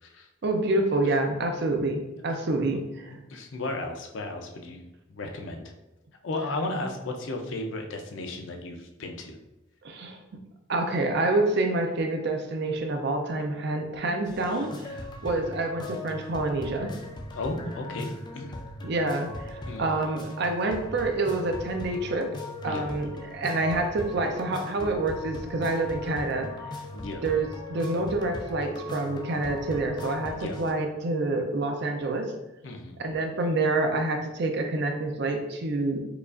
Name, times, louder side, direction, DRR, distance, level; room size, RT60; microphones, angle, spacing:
voice 1, 0.4-3.2 9.8-10.2 10.7-16.9 18.8-22.3 22.6-26.7 27.2-32.3 33.0-36.0, right 2 dB, 60° right, 4 dB, 0.5 m, -27 dB
voice 2, 3.1-5.6 6.2-9.4 17.3-18.5 19.7-19.9 22.6-22.9 26.9-27.2 30.3-30.6 32.6-33.0, left 2 dB, 75° left, 3 dB, 0.5 m, -34 dB
sound 1, 14.3-30.7, left 1 dB, 25° left, 0.4 m, -39 dB
4.8 x 2.4 x 2.4 m, 0.96 s
head